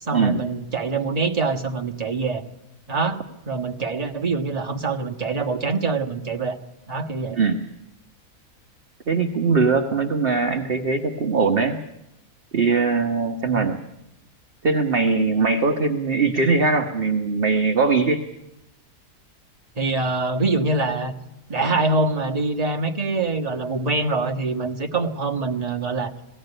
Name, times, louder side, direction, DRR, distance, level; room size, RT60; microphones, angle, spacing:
voice 1, 0.0-2.4 2.9-3.2 3.5-6.6 6.9-7.4 13.4-13.6 19.7-21.1 21.5-26.1, right 3 dB, 25° right, 3 dB, 1.5 m, -24 dB
voice 2, 7.3-7.6 9.1-11.8 12.5-13.8 14.6-18.2, right 4 dB, 40° right, 5 dB, 1.2 m, -21 dB
19.5 x 16.0 x 9.8 m, 0.87 s
omnidirectional pair, 1.6 m